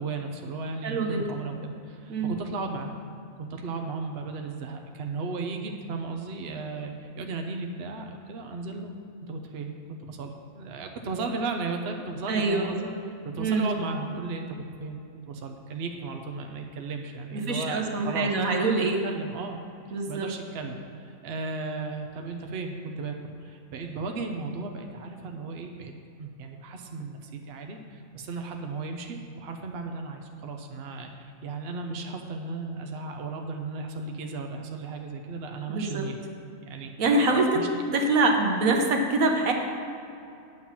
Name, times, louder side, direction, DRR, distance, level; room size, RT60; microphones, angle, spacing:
voice 1, 0.0-2.9 3.4-15.0 15.3-19.6 20.1-25.9 26.2-36.2 36.7-36.9 37.5-37.7, right 3 dB, 50° right, 4 dB, 0.9 m, -35 dB
voice 2, 0.8-1.3 2.1-2.3 12.3-12.7 13.4-13.7 17.3-19.0 19.9-20.3 35.7-36.1 37.0-37.6 37.9-39.5, right 3 dB, 75° right, 2 dB, 1.4 m, -24 dB
9.4 x 5.7 x 7.4 m, 2.6 s
omnidirectional pair, 1.5 m